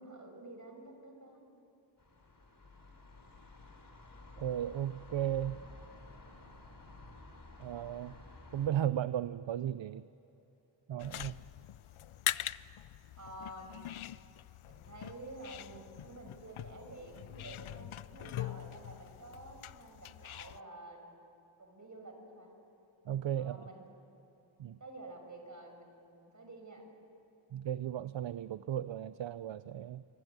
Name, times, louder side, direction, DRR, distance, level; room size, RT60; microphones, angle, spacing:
voice 1, 0.0-1.6 13.2-13.8 14.7-21.2 21.6-22.5 23.4-23.9 24.8-26.8, right 2 dB, 40° right, 4 dB, 5.7 m, -50 dB
sound 1, 2.0-8.7, left 2 dB, 45° left, 4.1 m, -53 dB
voice 2, 4.4-5.6 7.6-8.1 8.5-10.1 10.9-11.4 23.0-23.7 24.6-24.8 27.5-30.0, right 10 dB, 65° right, 14 dB, 0.7 m, -35 dB
sound 2, 11.0-20.6, left 12 dB, 85° left, 0.6 m, -43 dB
25.0 x 24.0 x 9.4 m, 2.9 s
wide cardioid pair, 105°, 47 cm